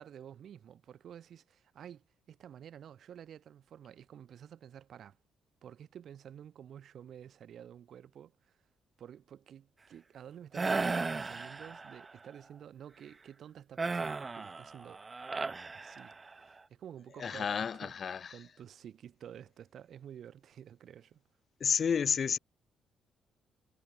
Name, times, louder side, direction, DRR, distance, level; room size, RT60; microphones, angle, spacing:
voice 1, 0.0-5.2 5.6-8.6 9.0-15.0 15.7-21.2, right 9 dB, 65° right, 6.1 m, -51 dB
sound 1, 10.5-12.1 13.8-16.4, right 4 dB, 30° right, 0.6 m, -35 dB
voice 2, 17.2-18.3 21.6-22.4, left 7 dB, 50° left, 0.8 m, -31 dB
cardioid pair, 90°, 0 cm